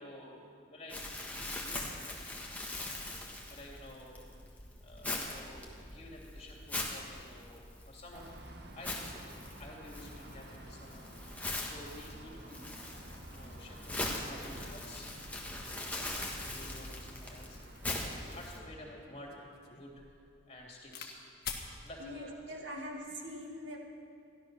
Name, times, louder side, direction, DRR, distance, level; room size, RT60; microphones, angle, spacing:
voice 1, 0.0-1.9 3.2-4.3 4.8-8.3 8.8-9.1 9.6-11.0 11.6-18.0 18.3-19.4 19.7-20.0 20.5-21.2 21.8-22.3, left 1 dB, 35° left, -2 dB, 2.8 m, -51 dB
Crumpling crinkling, 0.9-18.6, left 2 dB, 10° left, 1.4 m, -42 dB
sound 1, 8.1-18.5, right 1 dB, 60° right, 1.2 m, -52 dB
sound 2, 18.3-21.1 21.4-21.7 22.5-22.9, left 6 dB, 55° left, 1.3 m, -46 dB
voice 2, 22.0-23.8, equal, 80° right, 0 dB, 2.1 m, -43 dB
14.0 x 12.0 x 6.2 m, 2.3 s
head